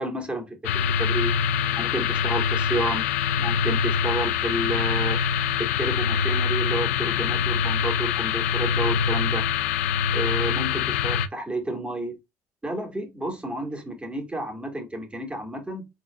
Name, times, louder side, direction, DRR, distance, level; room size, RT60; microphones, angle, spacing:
voice 1, 0.0-1.4 1.7-3.0 3.4-5.2 5.6-9.5 10.1-12.1 12.6-15.9, right 1 dB, 15° right, 2.1 m, -31 dB
sound 1, 0.6-11.3, left 7 dB, 85° left, 0.5 m, -24 dB
4.8 x 3.7 x 2.4 m
hypercardioid pair, 65°, 7 cm